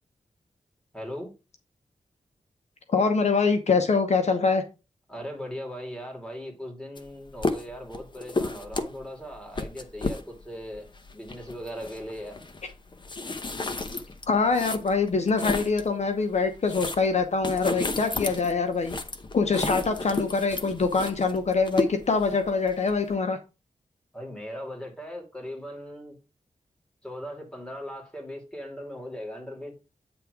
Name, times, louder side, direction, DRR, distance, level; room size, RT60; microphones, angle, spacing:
voice 1, 0.9-1.3 5.1-12.4 24.1-26.2 27.0-29.7, equal, 5° left, 2.6 m, -39 dB
voice 2, 2.9-4.6 14.3-19.0 19.3-23.4, left 4 dB, 60° left, 0.9 m, -24 dB
sound 1, 7.0-7.1 7.3-15.9 16.3-23.1, left 3 dB, 35° left, 0.8 m, -33 dB
8.8 x 3.5 x 4.9 m
wide cardioid pair, 120°, 13 cm